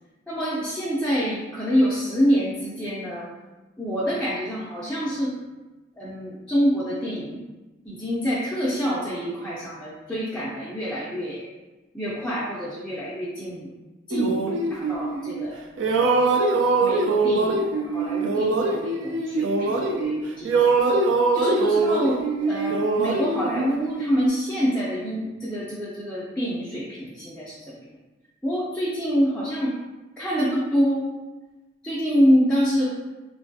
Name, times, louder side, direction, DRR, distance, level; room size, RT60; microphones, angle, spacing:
voice 1, 0.3-3.3 3.8-5.3 6.0-7.4 7.8-11.5 11.9-13.7 14.1-16.2 16.8-20.7 21.3-27.9 28.4-29.7 30.2-31.1 31.8-32.9, equal, 5° left, -9 dB, 0.4 m, -26 dB
sound 1, 14.1-15.5 15.8-20.2 20.4-24.3, right 3 dB, 70° right, 0.4 m, -23 dB
3.1 x 2.2 x 2.6 m, 1.1 s
head